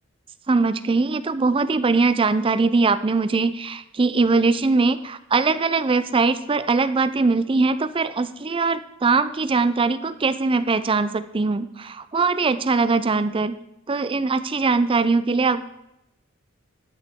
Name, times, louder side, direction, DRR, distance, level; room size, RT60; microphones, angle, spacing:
voice 1, 0.5-13.6 13.9-15.6, right 4 dB, 25° right, 13 dB, 0.4 m, -21 dB
13.0 x 9.8 x 3.6 m, 0.87 s
head